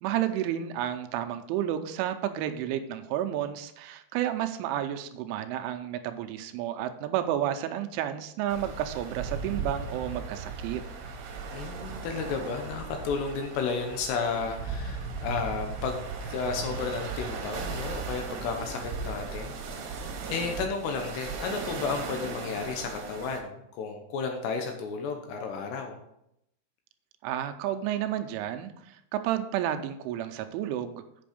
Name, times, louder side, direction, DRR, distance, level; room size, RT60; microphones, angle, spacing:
voice 1, 0.0-10.8 27.2-31.0, right 11 dB, 85° right, 8 dB, 3.1 m, -31 dB
sound 1, 8.5-23.4, right 4 dB, 65° right, 3.1 m, -37 dB
voice 2, 11.5-19.6 19.9-26.0, left 5 dB, 75° left, 4 dB, 2.7 m, -33 dB
8.4 x 6.1 x 5.0 m, 0.79 s
omnidirectional pair, 5.5 m